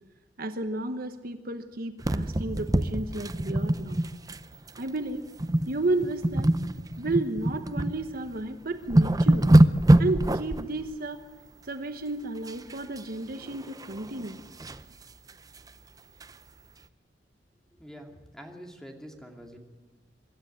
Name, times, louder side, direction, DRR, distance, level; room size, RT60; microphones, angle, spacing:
voice 1, 0.4-4.0 4.8-5.3 5.7-6.6 7.0-9.5 10.0-11.2 11.6-14.4, right 2 dB, 55° right, 8 dB, 1.1 m, -32 dB
sound 1, 2.0-4.4 4.7-4.9 5.4-5.7 6.0-7.9 8.4-8.5 8.8-10.6 12.5-13.0 13.4-14.8 15.3-15.4 15.7-15.8 16.2-16.3, right 1 dB, 20° right, 0.6 m, -23 dB
voice 2, 17.7-19.6, equal, 5° left, 2 dB, 2.4 m, -46 dB
24.5 x 12.5 x 9.5 m, 1.2 s
head